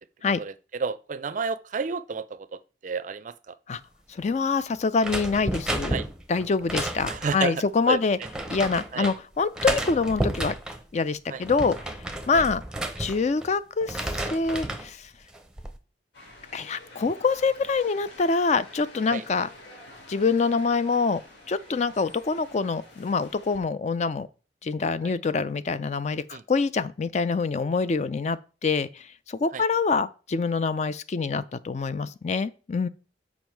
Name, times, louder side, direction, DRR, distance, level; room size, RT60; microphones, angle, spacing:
voice 1, 0.4-3.5 5.9-6.1 7.1-7.5 7.9-8.0 8.9-9.1 11.3-11.4 12.3-12.4 19.1-19.2 25.0-25.1 26.3-26.4 29.5-29.6, right 5 dB, 45° right, 0.4 m, -31 dB
voice 2, 4.1-6.0 6.3-8.2 8.5-10.5 10.9-11.9 12.3-12.6 13.0-15.1 16.5-19.5 20.1-21.2 21.5-24.3 24.6-32.9, left 4 dB, 40° left, 0.4 m, -25 dB
sound 1, 5.0-7.5 8.2-9.2 9.6-10.8 11.3-13.5 13.8-14.9 15.3-15.8, right 1 dB, 5° right, 0.7 m, -31 dB
sound 2, 16.1-23.6, left 1 dB, 85° left, 2.7 m, -49 dB
7.3 x 5.1 x 4.6 m
head